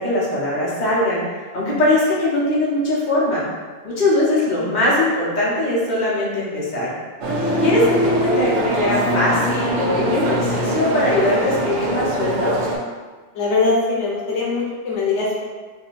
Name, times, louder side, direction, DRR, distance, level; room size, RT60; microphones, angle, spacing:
voice 1, 0.0-3.4 3.8-6.9 7.6-12.5, left 1 dB, 40° left, -7 dB, 1.1 m, -21 dB
sound 1, 7.2-12.8, equal, 80° right, 1.0 m, -22 dB
voice 2, 7.6-7.9 13.3-15.4, left 3 dB, 80° left, -4 dB, 1.0 m, -22 dB
4.2 x 2.2 x 4.1 m, 1.4 s
omnidirectional pair, 1.2 m